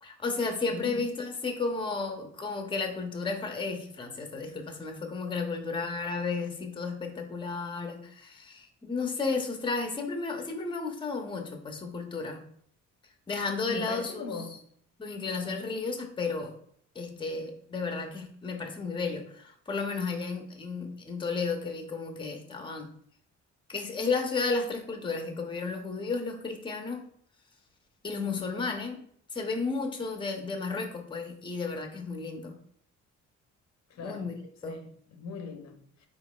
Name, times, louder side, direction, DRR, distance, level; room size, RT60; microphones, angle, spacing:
voice 1, 0.0-12.5 13.3-14.6 15.0-16.5 16.9-22.9 23.7-27.1 28.0-29.0 29.3-32.6 34.0-34.3 34.6-34.8, left 4 dB, 15° left, 0.7 m, -33 dB
voice 2, 0.7-1.1 13.7-14.7 33.9-34.3 34.7-36.1, left 3 dB, 65° left, 0.7 m, -40 dB
4.2 x 3.9 x 2.3 m
cardioid pair, 90°, 30 cm